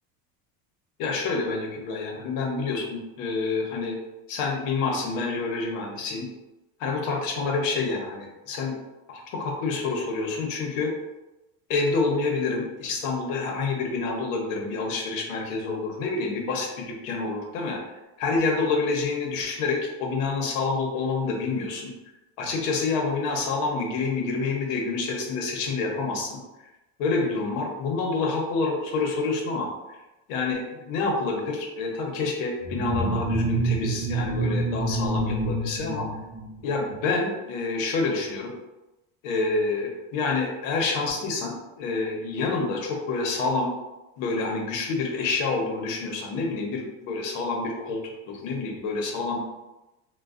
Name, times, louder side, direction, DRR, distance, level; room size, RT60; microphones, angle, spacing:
voice 1, 1.0-4.0 4.3-6.3 6.8-8.7 9.1-10.9 11.7-17.8 18.2-21.9 22.4-26.4 27.0-29.7 30.3-36.1 36.6-38.5 39.2-43.7 44.2-48.0 48.3-49.4, left 3 dB, 85° left, 1 dB, 0.8 m, -28 dB
sound 1, 32.7-36.8, right 2 dB, 25° right, 0.5 m, -27 dB
3.2 x 2.1 x 2.4 m, 1.0 s
cardioid pair, 135°, 38 cm